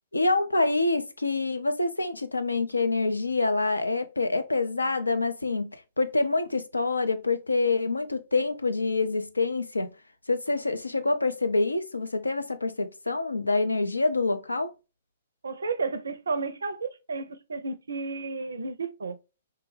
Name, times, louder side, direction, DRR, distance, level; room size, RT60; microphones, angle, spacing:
voice 1, 0.1-9.9 10.3-14.7, left 3 dB, 85° left, 0.4 m, -26 dB
voice 2, 15.4-19.2, right 4 dB, 70° right, 0.4 m, -32 dB
3.3 x 2.1 x 3.1 m
figure-of-eight pair, 115°, 0 cm